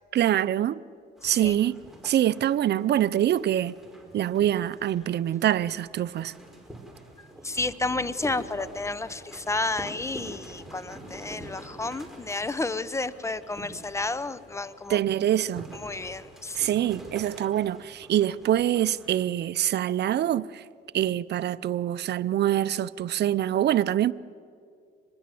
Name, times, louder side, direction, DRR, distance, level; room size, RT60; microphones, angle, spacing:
voice 1, 0.1-0.8 1.2-1.8 2.0-3.8 4.1-6.3 14.9-15.7 16.6-20.6 20.9-24.1, right 11 dB, 60° right, 0.6 m, -25 dB
voice 2, 1.2-1.6 7.2-15.0 15.7-16.7, left 3 dB, 15° left, 0.9 m, -31 dB
sound 1, 1.2-19.3, right 1 dB, ahead, 4.8 m, -46 dB
25.0 x 20.5 x 7.7 m
cardioid pair, 90°, 20 cm